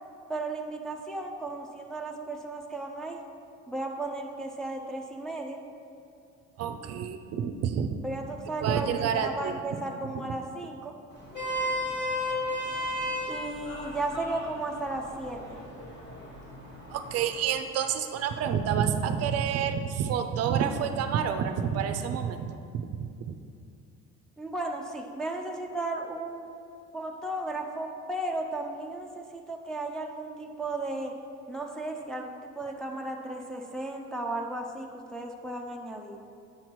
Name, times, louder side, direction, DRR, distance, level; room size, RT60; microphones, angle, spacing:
voice 1, 0.3-3.2 3.7-5.6 8.0-10.9 13.3-15.4 24.4-26.5 26.9-31.1 31.5-36.2, right 2 dB, ahead, 0 dB, 0.4 m, -35 dB
voice 2, 6.6-7.9 8.6-9.5 16.9-22.9 23.3-23.4, right 8 dB, 55° right, 8 dB, 0.5 m, -28 dB
Vehicle horn car horn honking, 11.1-17.5, left 1 dB, 35° left, 1.7 m, -34 dB
8.6 x 5.7 x 3.1 m, 2.4 s
cardioid pair, 125°, 30 cm